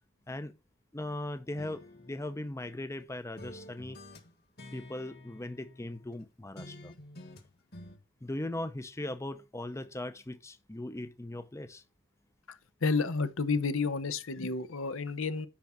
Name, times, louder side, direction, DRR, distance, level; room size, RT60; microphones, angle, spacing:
voice 1, 0.3-0.6 0.9-4.0 4.7-6.9 8.2-11.8, left 1 dB, 15° left, 0.6 m, -39 dB
sound 1, 1.6-3.0 3.4-6.2 6.6-8.0, left 1 dB, 50° left, 1.8 m, -50 dB
voice 2, 12.8-15.5, left 4 dB, 80° left, 0.8 m, -30 dB
9.8 x 3.7 x 5.7 m
head